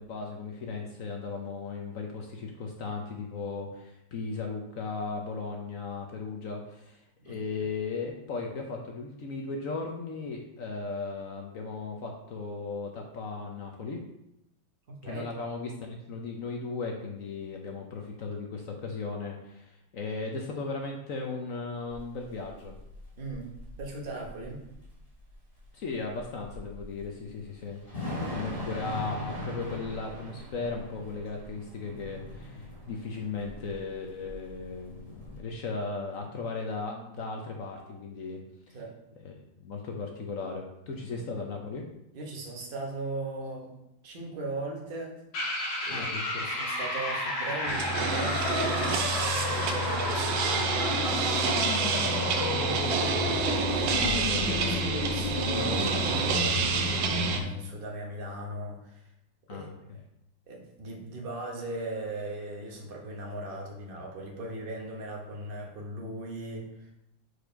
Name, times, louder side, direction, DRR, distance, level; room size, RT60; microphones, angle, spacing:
voice 1, 0.0-7.0 7.2-14.0 15.0-22.7 25.7-27.8 28.3-38.4 38.7-38.8 39.2-39.3 39.6-41.8 45.9-46.4 53.9-54.9 59.5-59.7, left 4 dB, 60° left, 2 dB, 0.9 m, -36 dB
voice 2, 14.9-15.2 23.2-24.7 38.7-39.0 40.9-41.2 42.1-43.7 44.0-45.2 45.4-45.5 45.8-46.1 46.4-48.8 49.2-51.0 51.6-54.1 54.5-59.0 59.5-59.7 60.5-66.9, right 2 dB, 35° right, 0 dB, 1.1 m, -38 dB
Thunder / Rain, 21.9-35.4, left 1 dB, 20° left, 1.7 m, -41 dB
sound 1, 45.3-57.4, left 2 dB, 90° left, 2.2 m, -32 dB
sound 2, 47.7-57.4, right 4 dB, 75° right, 1.3 m, -28 dB
5.0 x 4.8 x 5.1 m, 0.85 s
omnidirectional pair, 2.1 m